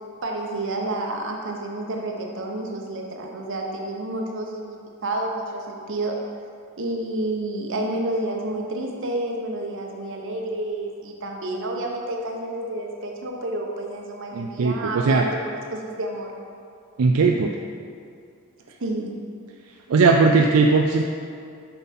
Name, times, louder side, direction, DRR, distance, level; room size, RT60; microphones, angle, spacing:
voice 1, 0.2-6.2 6.8-15.4 15.7-16.3 18.8-19.2, right 2 dB, 60° right, 1 dB, 0.9 m, -29 dB
voice 2, 14.3-15.3 17.0-17.5 19.9-21.0, right 4 dB, 75° right, 2 dB, 0.4 m, -18 dB
7.2 x 5.6 x 4.2 m, 2.4 s
head